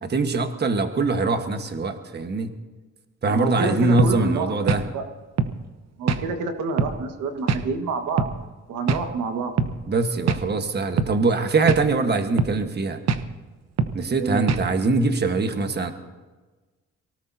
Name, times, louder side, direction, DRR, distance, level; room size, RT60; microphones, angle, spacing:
voice 1, 0.0-2.5 3.2-4.8 9.9-13.0 13.9-15.9, right 3 dB, 35° right, 6 dB, 1.4 m, -23 dB
voice 2, 3.3-5.0 6.0-8.2 8.7-9.5 14.2-14.4, right 4 dB, 85° right, 5 dB, 1.7 m, -28 dB
sound 1, 4.0-4.2 4.7-4.9 5.4-5.6 6.1-6.3 6.8-7.0 7.5-7.6 8.2-8.4 8.9-9.1 9.6-9.7 10.3-10.4 11.0-11.2 11.7-11.9 12.4-12.6 13.1-13.3 13.8-14.0 14.5-14.7, right 5 dB, 60° right, 1.0 m, -23 dB
24.0 x 18.0 x 2.8 m, 1.3 s
cardioid pair, 90°, 30 cm